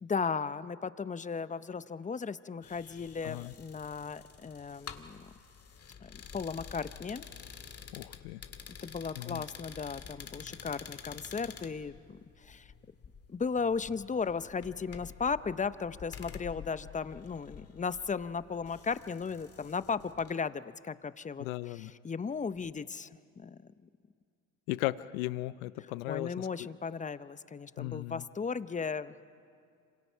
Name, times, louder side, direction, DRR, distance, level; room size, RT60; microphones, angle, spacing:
voice 1, 0.0-5.3 6.0-7.2 8.8-12.7 13.3-23.1 23.4-23.7 25.8-29.1, left 5 dB, 20° left, 15 dB, 0.7 m, -36 dB
sound 1, 2.6-20.3, left 7 dB, 35° left, 1.8 m, -49 dB
voice 2, 3.2-3.5 7.9-8.4 9.2-9.4 21.4-21.9 24.7-26.5 27.8-28.2, left 18 dB, 90° left, 18 dB, 0.7 m, -36 dB
26.5 x 26.0 x 5.7 m, 2.4 s
supercardioid pair, 75°, 40 cm